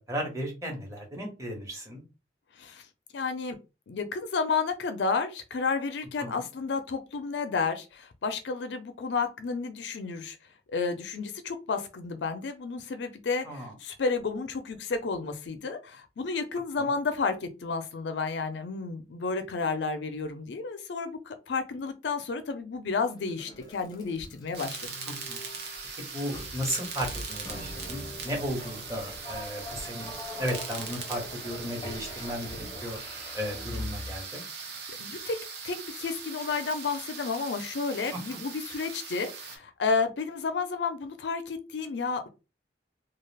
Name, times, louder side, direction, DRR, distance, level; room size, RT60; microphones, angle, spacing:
voice 1, 0.0-2.0 6.2-6.4 13.4-13.7 16.8-16.9 25.1-25.4 26.0-30.1 30.4-33.0 33.3-34.4 38.3-38.4, equal, 20° right, -1 dB, 1.1 m, -35 dB
voice 2, 3.1-3.6 3.9-10.4 10.7-24.9 34.7-35.4 35.6-42.3, left 4 dB, 70° left, 9 dB, 0.5 m, -31 dB
sound 1, 23.0-34.2, left 1 dB, 25° left, 0.6 m, -42 dB
sound 2, 24.5-39.6, right 5 dB, 60° right, 0.7 m, -40 dB
2.3 x 2.3 x 3.3 m, 0.29 s
head